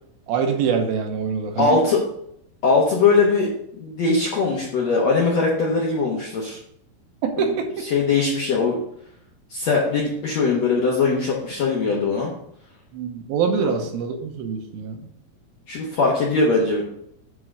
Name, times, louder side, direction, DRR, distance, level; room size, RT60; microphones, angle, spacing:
voice 1, 0.3-1.8 7.2-7.8 12.9-15.1, right 6 dB, 75° right, 4 dB, 2.7 m, -24 dB
voice 2, 1.6-2.0 2.6-6.6 7.4-7.5 7.9-8.8 9.5-12.3 15.7-16.8, left 4 dB, 65° left, -3 dB, 1.7 m, -21 dB
9.6 x 3.8 x 6.1 m, 0.70 s
omnidirectional pair, 4.6 m